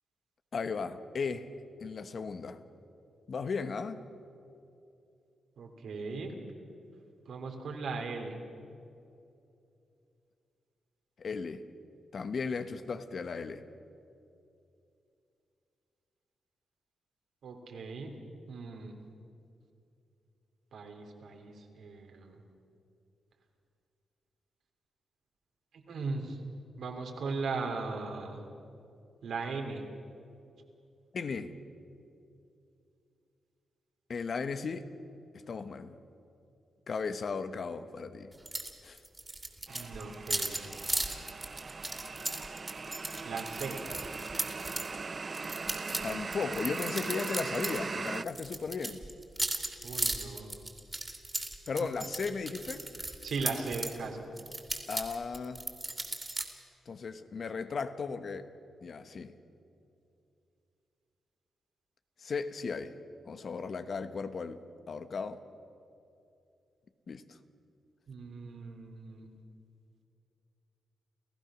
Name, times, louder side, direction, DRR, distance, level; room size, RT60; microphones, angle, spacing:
voice 1, 0.5-1.5 1.8-2.6 3.3-4.0 11.2-11.6 12.1-13.6 31.1-31.5 34.1-34.9 35.3-36.0 36.9-38.3 38.8-39.0 46.0-49.0 51.7-52.8 54.9-55.6 56.9-58.5 58.8-59.3 62.2-62.9 63.2-65.4 67.1-67.4, left 5 dB, 55° left, 10 dB, 1.1 m, -36 dB
voice 2, 5.6-6.3 7.2-8.4 17.4-18.1 18.5-18.9 20.7-22.4 25.7-26.4 26.8-28.5 29.2-29.9 39.7-40.7 43.2-43.8 49.8-50.5 51.7-51.9 53.2-54.3 68.1-69.3, right 4 dB, 75° right, 3 dB, 3.1 m, -38 dB
sound 1, 38.5-38.7 39.0-44.9 45.3-47.8 48.1-53.9 54.4-56.4, right 2 dB, 20° right, 3.0 m, -36 dB
sound 2, 39.7-48.2, right 4 dB, 40° right, 0.5 m, -40 dB
29.5 x 15.0 x 6.3 m, 2.6 s
cardioid pair, 75°, 0 cm